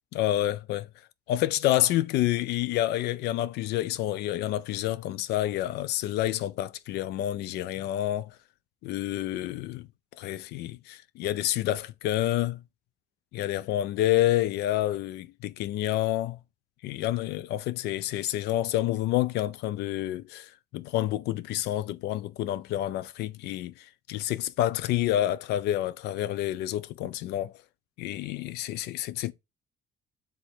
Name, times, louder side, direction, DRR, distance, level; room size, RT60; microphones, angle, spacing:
voice 1, 0.1-0.9 1.3-8.3 8.8-9.9 10.2-12.6 13.3-16.4 16.8-27.5 28.0-29.3, left 14 dB, 80° left, 0.4 m, -28 dB
3.7 x 3.0 x 4.3 m
cardioid pair, 110°, 17 cm